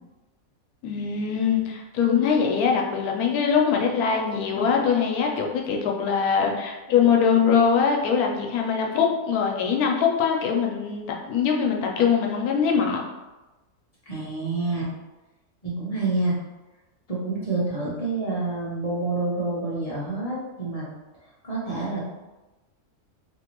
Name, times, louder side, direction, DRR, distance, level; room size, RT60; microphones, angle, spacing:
voice 1, 0.8-13.0, left 6 dB, 85° left, 1 dB, 1.1 m, -22 dB
voice 2, 14.1-14.9 15.6-16.3 17.1-20.9 21.4-22.1, right 2 dB, 40° left, -6 dB, 0.5 m, -28 dB
2.7 x 2.6 x 2.9 m, 1.1 s
omnidirectional pair, 1.5 m